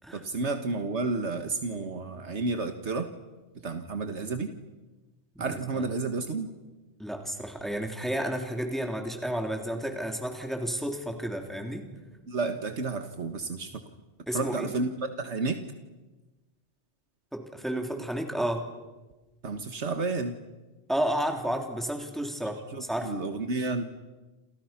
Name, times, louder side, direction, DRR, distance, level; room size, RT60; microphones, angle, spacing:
voice 1, 0.1-3.1 3.6-4.5 5.4-6.5 12.3-13.8 14.3-14.9 15.2-15.6 19.4-20.3 22.7-23.8, right 3 dB, 85° right, 6 dB, 1.9 m, -31 dB
voice 2, 5.3-5.9 7.0-11.9 14.3-14.7 17.3-18.6 20.9-23.1, right 1 dB, ahead, 2 dB, 3.4 m, -31 dB
29.0 x 28.5 x 6.0 m, 1.2 s
omnidirectional pair, 1.1 m